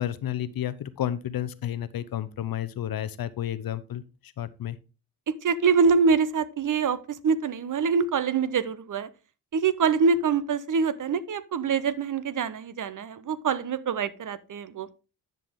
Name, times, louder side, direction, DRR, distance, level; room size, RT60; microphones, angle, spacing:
voice 1, 0.0-4.0 4.4-4.8, left 11 dB, 55° left, 15 dB, 0.8 m, -31 dB
voice 2, 5.4-9.1 9.5-14.9, right 5 dB, 45° right, 16 dB, 0.8 m, -25 dB
10.5 x 5.3 x 3.6 m, 0.31 s
hypercardioid pair, 45°, 44 cm